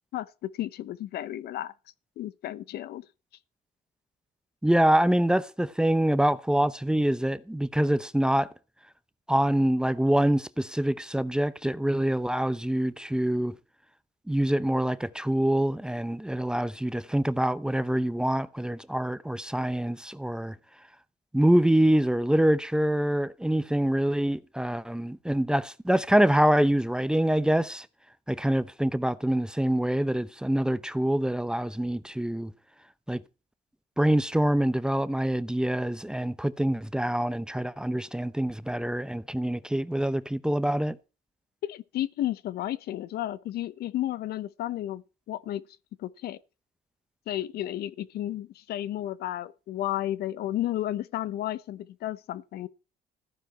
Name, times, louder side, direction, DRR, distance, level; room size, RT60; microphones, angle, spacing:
voice 1, 0.1-1.7 2.2-3.0 41.6-45.6 46.0-46.4 47.3-52.7, left 13 dB, 70° left, 1.0 m, -32 dB
voice 2, 4.6-8.5 9.3-13.5 14.3-20.5 21.3-27.9 28.3-32.5 33.1-33.2 34.0-41.0, right 1 dB, 5° right, 0.8 m, -25 dB
14.5 x 9.9 x 4.4 m
cardioid pair, 110°, 17 cm